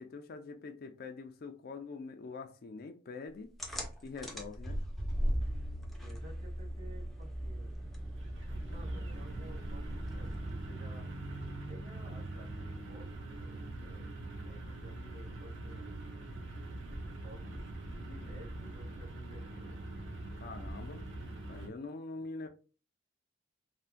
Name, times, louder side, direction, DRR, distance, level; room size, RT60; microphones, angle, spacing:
voice 1, 0.0-3.5 4.0-4.8 20.4-21.1 21.5-22.5, left 4 dB, 50° left, 0.4 m, -44 dB
sound 1, 3.6-10.8, equal, ahead, 0.5 m, -38 dB
voice 2, 6.0-7.8 8.6-11.1 11.7-16.0 17.1-19.8, equal, 45° right, 1.6 m, -55 dB
sound 2, 7.5-21.7, right 2 dB, 70° right, 0.7 m, -43 dB
3.4 x 2.2 x 2.4 m
head